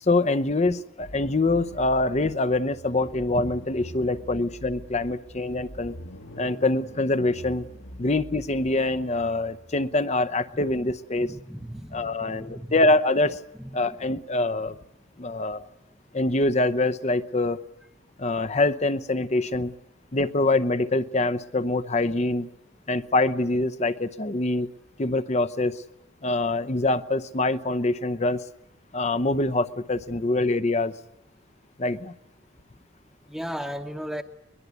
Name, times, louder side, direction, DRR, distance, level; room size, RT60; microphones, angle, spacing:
voice 1, 0.0-6.0 6.4-7.6 8.0-11.3 11.9-13.4 13.7-14.8 15.2-15.7 16.1-17.6 18.2-19.7 20.1-22.5 22.9-24.7 25.0-25.8 26.2-28.4 28.9-30.9 31.8-32.2, left 2 dB, 35° left, 13 dB, 0.8 m, -24 dB
sound 1, 1.0-10.4, equal, 70° left, 1.6 m, -44 dB
voice 2, 11.1-12.7 13.6-14.2 33.3-34.2, equal, ahead, 3 dB, 1.0 m, -36 dB
22.5 x 22.0 x 8.3 m, 0.91 s
head